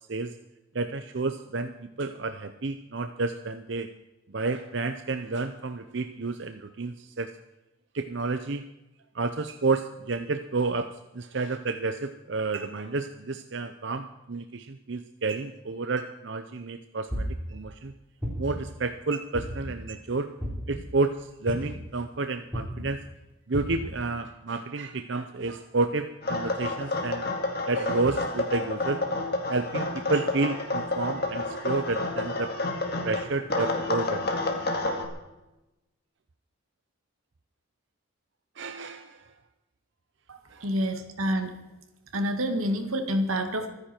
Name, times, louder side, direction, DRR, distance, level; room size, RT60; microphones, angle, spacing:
voice 1, 0.7-3.9 4.3-7.3 7.9-8.6 9.1-17.9 18.4-20.3 20.7-23.0 23.5-27.3 27.7-29.0 29.5-32.5 33.0-34.3 38.6-39.3 40.5-40.7, right 3 dB, 55° right, 8 dB, 0.7 m, -30 dB
sound 1, 17.1-17.5 18.2-18.7 19.3-19.8 20.4-20.8 21.5-21.9 22.5-22.8 23.5-23.9, equal, 10° right, 4.0 m, -32 dB
sound 2, 26.2-33.2 33.5-35.0, left 2 dB, 50° left, 2.2 m, -29 dB
voice 2, 40.3-41.5 42.1-43.7, equal, 90° right, 6 dB, 2.1 m, -28 dB
24.0 x 10.0 x 4.5 m, 0.98 s
head